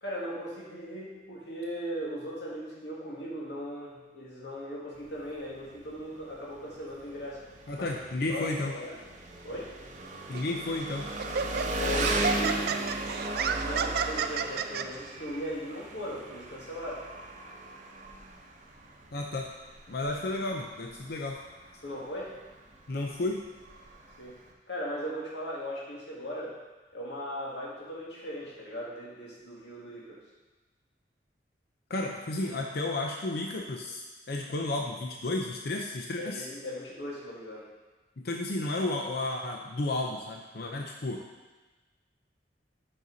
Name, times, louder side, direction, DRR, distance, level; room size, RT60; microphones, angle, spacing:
voice 1, 0.0-7.4 7.8-7.9 8.3-9.0 9.4-9.7 11.8-12.8 13.6-17.0 19.9-20.0 21.8-22.3 24.2-24.4 24.7-26.6 26.9-30.2 36.2-37.7, equal, 80° left, -5 dB, 2.0 m, -38 dB
Engine, 5.0-24.5, right 2 dB, 45° right, 0.8 m, -36 dB
voice 2, 7.7-8.7 10.3-11.1 19.1-19.5 19.9-21.4 22.9-23.4 31.9-36.5 38.2-41.2, left 2 dB, 60° left, 1 dB, 0.6 m, -32 dB
Laughter, 10.3-10.6 11.2-14.8, right 6 dB, 60° right, 0.4 m, -31 dB
7.8 x 5.7 x 4.0 m, 1.2 s
head